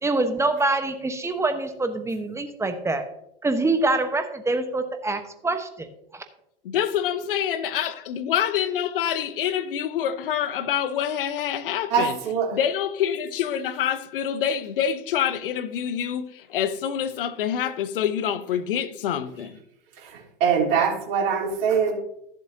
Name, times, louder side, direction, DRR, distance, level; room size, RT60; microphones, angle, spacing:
voice 1, 0.0-3.1 3.4-5.9 6.1-6.2, right 2 dB, 10° right, 1.1 m, -25 dB
voice 2, 6.6-12.2 12.5-19.6, left 9 dB, 65° left, 1.0 m, -26 dB
voice 3, 11.9-12.5 20.4-21.9, right 6 dB, 50° right, 3.5 m, -22 dB
14.0 x 7.4 x 2.8 m
figure-of-eight pair, 90°, 30 cm